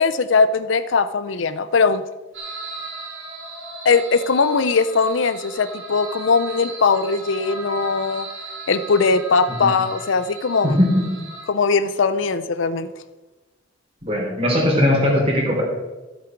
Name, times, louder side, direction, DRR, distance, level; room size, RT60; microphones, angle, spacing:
voice 1, 0.0-2.0 3.8-8.3 8.7-10.8 11.5-12.9, left 4 dB, 75° left, 13 dB, 0.6 m, -20 dB
sound 1, 2.3-11.4, right 2 dB, 75° right, 2.8 m, -36 dB
voice 2, 14.0-15.6, left 1 dB, 30° right, -2 dB, 3.4 m, -19 dB
13.5 x 7.7 x 4.5 m, 1.2 s
head